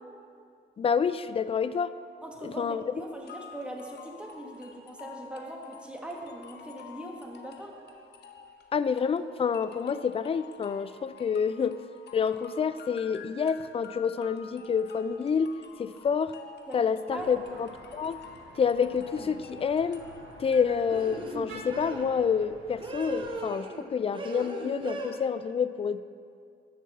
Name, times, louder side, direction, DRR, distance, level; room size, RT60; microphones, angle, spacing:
voice 1, 0.8-1.9 2.6-2.8 8.7-11.8 12.1-15.5 15.8-16.3 16.7-18.2 18.6-20.0 20.4-26.0, left 6 dB, 30° left, 14 dB, 0.3 m, -28 dB
voice 2, 2.2-7.7 16.7-16.8 17.1-17.5, right 1 dB, 5° right, -1 dB, 1.4 m, -41 dB
sound 1, 3.3-21.2, left 6 dB, 60° left, 0.9 m, -50 dB
sound 2, 17.1-23.4, right 2 dB, 85° right, 1.5 m, -50 dB
sound 3, 19.1-19.5 20.9-22.1 22.8-23.8 24.1-25.1, right 2 dB, 25° right, 1.0 m, -38 dB
7.2 x 6.1 x 7.0 m, 2.3 s
cardioid pair, 90°, 20 cm